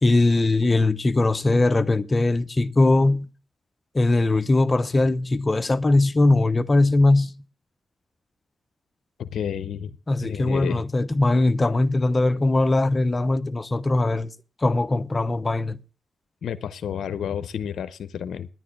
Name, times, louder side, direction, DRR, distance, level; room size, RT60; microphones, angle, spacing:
voice 1, 0.0-3.3 3.9-7.3 10.1-14.3 14.6-15.8, left 2 dB, 35° left, 0.9 m, -20 dB
voice 2, 9.2-9.9 10.2-10.8 16.4-18.5, left 8 dB, 85° left, 0.6 m, -30 dB
10.5 x 9.3 x 7.5 m
cardioid pair, 55°, 0 cm